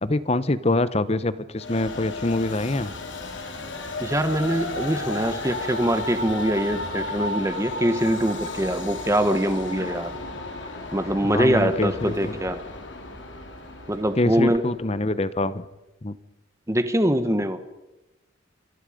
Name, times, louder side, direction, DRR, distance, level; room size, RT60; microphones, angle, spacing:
voice 1, 0.0-2.9 11.2-12.3 14.2-15.7 16.0-16.2, left 2 dB, 30° left, 15 dB, 0.9 m, -25 dB
Train, 1.6-15.0, left 2 dB, 65° left, 3.1 m, -34 dB
voice 2, 4.0-10.1 10.9-12.6 13.9-14.6 16.7-17.6, equal, 15° right, 10 dB, 1.4 m, -23 dB
27.5 x 24.0 x 5.2 m, 1.0 s
head